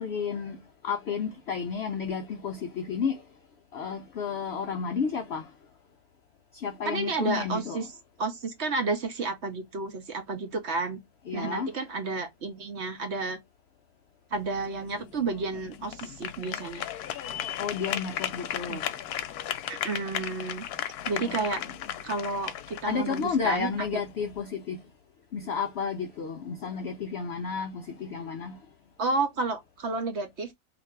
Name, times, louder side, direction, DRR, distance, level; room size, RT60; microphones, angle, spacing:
voice 1, 0.0-3.3 3.7-5.5 6.5-7.9 11.3-11.7 17.6-18.9 21.2-21.9 22.8-24.9 25.3-28.6, left 6 dB, 65° left, 0.6 m, -32 dB
voice 2, 6.9-7.8 8.2-11.0 11.3-13.4 14.3-16.9 18.7-18.8 19.7-20.7 21.1-21.6 22.0-23.7 29.0-30.5, right 3 dB, 55° right, 1.0 m, -31 dB
sound 1, 14.3-24.4, left 10 dB, 90° left, 1.1 m, -36 dB
2.9 x 2.5 x 4.3 m
omnidirectional pair, 1.6 m